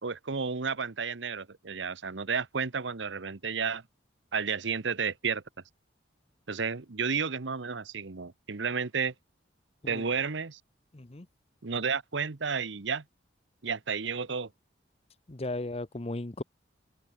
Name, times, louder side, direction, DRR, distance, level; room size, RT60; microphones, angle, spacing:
voice 1, 0.0-3.8 4.3-5.4 6.5-9.1 9.9-10.6 11.6-13.0 13.6-14.5, right 5 dB, 70° right, 1.0 m, -32 dB
voice 2, 10.9-11.3 15.3-16.4, left 2 dB, 30° left, 0.9 m, -36 dB
open air
head